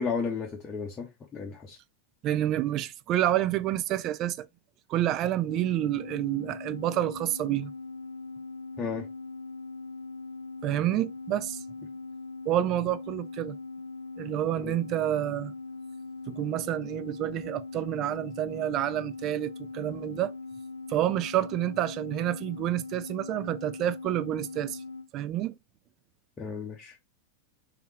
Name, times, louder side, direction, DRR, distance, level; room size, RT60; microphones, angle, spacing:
voice 1, 0.0-1.8 8.8-9.1 14.6-14.7 26.4-27.0, left 5 dB, 20° left, 0.8 m, -33 dB
voice 2, 2.2-4.5 4.9-7.7 10.6-11.6 12.5-13.6 14.2-15.5 16.3-20.3 20.9-24.8 25.1-25.5, right 13 dB, 35° right, 0.3 m, -29 dB
sound 1, 5.5-25.1, left 3 dB, 80° left, 0.3 m, -41 dB
3.3 x 3.2 x 3.2 m
figure-of-eight pair, 90°, 0 cm